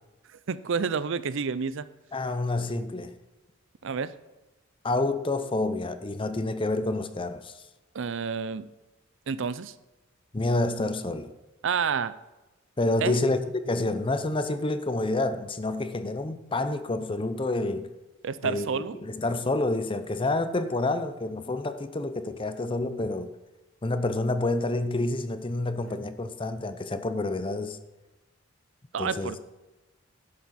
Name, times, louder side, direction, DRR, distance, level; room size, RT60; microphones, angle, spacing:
voice 1, 0.5-1.9 3.8-4.1 7.9-8.7 9.3-9.7 11.6-12.1 13.0-13.2 18.2-18.9 28.9-29.4, right 6 dB, 65° right, 0.5 m, -29 dB
voice 2, 2.1-3.1 4.8-7.6 10.3-11.3 12.8-17.9 18.4-23.3 23.8-27.8 29.0-29.3, left 2 dB, 25° left, 0.7 m, -28 dB
11.5 x 9.7 x 4.3 m
head